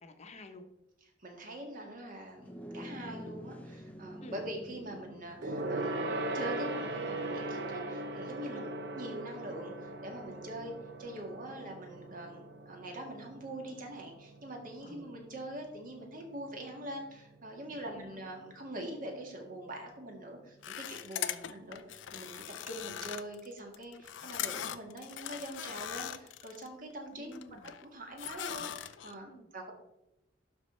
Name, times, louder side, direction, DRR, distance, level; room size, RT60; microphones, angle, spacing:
voice 1, 0.0-0.6 4.2-4.4 8.5-8.7 14.8-15.1 17.7-18.2 21.3-21.6 27.1-27.7 29.3-29.5, left 1 dB, 35° left, 5 dB, 0.9 m, -50 dB
voice 2, 1.2-8.6 8.9-10.7 11.0-27.3 27.6-29.7, right 1 dB, 50° right, 2 dB, 1.9 m, -44 dB
sound 1, 2.4-12.0, equal, 10° left, 0.7 m, -50 dB
Gong, 5.4-15.2 15.5-15.7 16.0-16.1, right 2 dB, 65° right, 0.9 m, -39 dB
sound 2, 20.6-26.7 27.1-27.8 28.2-29.1, left 10 dB, 85° left, 0.5 m, -40 dB
12.0 x 4.1 x 4.4 m, 0.87 s
head